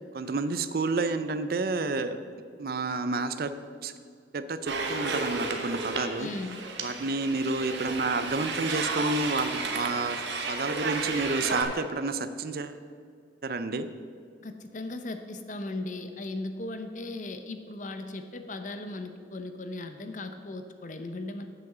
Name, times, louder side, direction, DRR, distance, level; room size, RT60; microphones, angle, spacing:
voice 1, 0.1-2.2 2.6-3.5 3.8-3.9 4.3-6.3 6.8-10.2 10.5-12.8 13.4-13.9, right 3 dB, 55° right, 11 dB, 0.5 m, -30 dB
sound 1, 4.7-11.6, right 3 dB, 80° right, 1.1 m, -32 dB
voice 2, 6.2-6.6 14.4-21.5, left 2 dB, 45° left, 8 dB, 0.6 m, -37 dB
7.6 x 6.0 x 7.4 m, 2.2 s
head